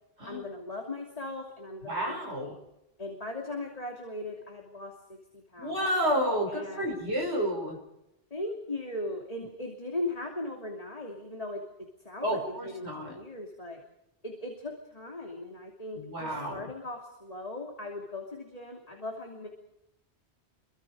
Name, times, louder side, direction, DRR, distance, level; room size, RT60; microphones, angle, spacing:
voice 1, 0.3-2.5 3.0-5.8 6.5-7.0 8.3-13.8 14.2-19.5, left 2 dB, 35° left, 1 dB, 3.0 m, -39 dB
voice 2, 1.8-2.6 5.6-7.8 12.2-13.2 15.9-16.6, equal, 80° right, 1 dB, 6.3 m, -30 dB
28.0 x 24.5 x 5.0 m, 0.85 s
omnidirectional pair, 1.1 m